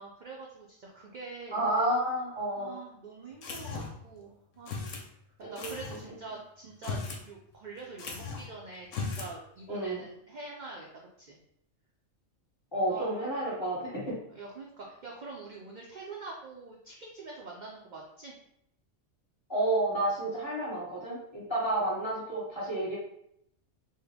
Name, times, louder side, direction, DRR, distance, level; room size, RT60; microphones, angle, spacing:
voice 1, 0.0-1.7 2.5-4.8 5.4-10.9 11.2-11.4 12.9-13.2 14.3-18.4, right 3 dB, 60° right, -2 dB, 0.5 m, -45 dB
voice 2, 1.5-2.7 5.4-5.7 9.7-10.0 12.7-14.1 19.5-23.0, right 1 dB, 25° left, -7 dB, 1.2 m, -30 dB
sound 1, 3.4-4.1 4.7-5.1 5.6-6.0 6.7-7.3 7.5-7.6 8.0-8.5 8.9-9.3, left 4 dB, 80° left, 1.0 m, -37 dB
3.6 x 2.1 x 3.4 m, 0.75 s
omnidirectional pair, 1.3 m